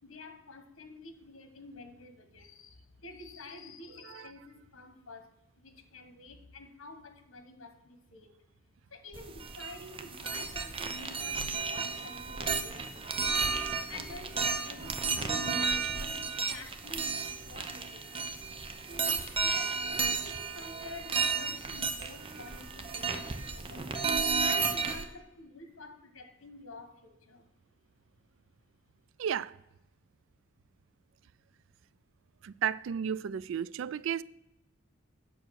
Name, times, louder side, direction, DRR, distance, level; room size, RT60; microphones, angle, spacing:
voice 1, 0.0-8.3 8.9-18.1 18.9-27.4, left 3 dB, 80° left, 1.2 m, -49 dB
sound 1, 9.1-25.0, right 5 dB, 25° right, 0.7 m, -33 dB
voice 2, 29.2-29.6 32.4-34.2, right 8 dB, 65° right, 0.3 m, -33 dB
9.0 x 6.3 x 6.3 m
head